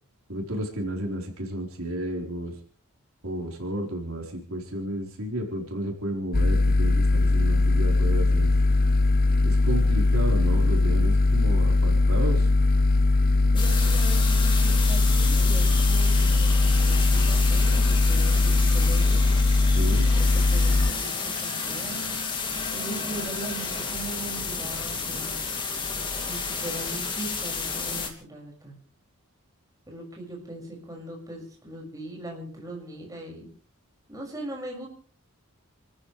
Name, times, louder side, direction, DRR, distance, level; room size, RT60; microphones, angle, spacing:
voice 1, 0.3-2.6 3.2-8.5 9.4-12.5 19.7-20.1, right 1 dB, 70° right, 1 dB, 4.5 m, -32 dB
sound 1, 6.3-20.9, left 2 dB, 40° left, 0.7 m, -20 dB
voice 2, 13.5-19.2 20.3-22.0 22.7-25.5 26.2-28.8 29.9-33.5 34.1-34.9, right 2 dB, 15° right, -1 dB, 6.4 m, -39 dB
sound 2, 13.6-28.1, left 5 dB, 20° left, 2.8 m, -31 dB
29.5 x 14.5 x 3.4 m, 0.41 s
head